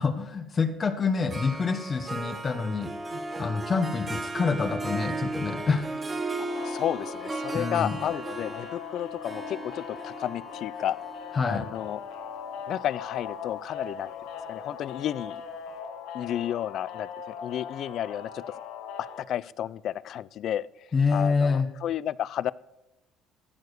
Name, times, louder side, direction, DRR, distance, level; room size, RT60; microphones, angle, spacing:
voice 1, 0.0-5.9 7.5-7.9 11.3-11.7 20.9-21.7, left 5 dB, 30° left, 8 dB, 0.9 m, -27 dB
Harp, 1.3-12.7, right 2 dB, 25° right, 1.1 m, -36 dB
voice 2, 6.4-11.0 11.4-12.0 12.7-14.1 14.5-15.4 16.1-18.6 19.2-22.5, left 11 dB, 55° left, 21 dB, 0.3 m, -32 dB
sound 1, 6.5-19.2, left 7 dB, 85° left, 1.1 m, -40 dB
14.0 x 4.8 x 6.3 m, 0.98 s
cardioid pair, 115°, 0 cm